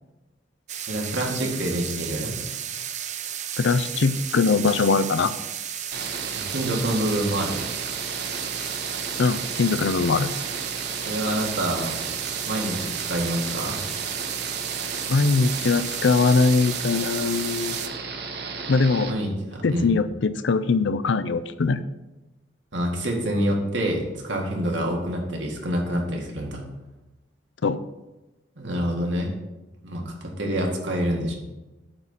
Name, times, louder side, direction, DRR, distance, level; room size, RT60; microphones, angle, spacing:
sound 1, 0.7-17.9, right 9 dB, 40° right, 0.5 m, -33 dB
voice 1, 0.9-2.4 6.5-7.6 11.0-11.9 12.5-13.8 19.1-19.9 22.7-26.6 28.6-29.3 29.8-31.3, equal, 75° right, 0 dB, 2.0 m, -27 dB
voice 2, 3.6-5.3 9.2-10.3 15.1-17.8 18.7-19.2 19.6-21.8 27.6-27.8, left 4 dB, 70° left, 13 dB, 0.5 m, -21 dB
sound 2, 5.9-19.1, right 4 dB, 55° right, 1.0 m, -34 dB
8.8 x 4.2 x 7.2 m, 1.1 s
head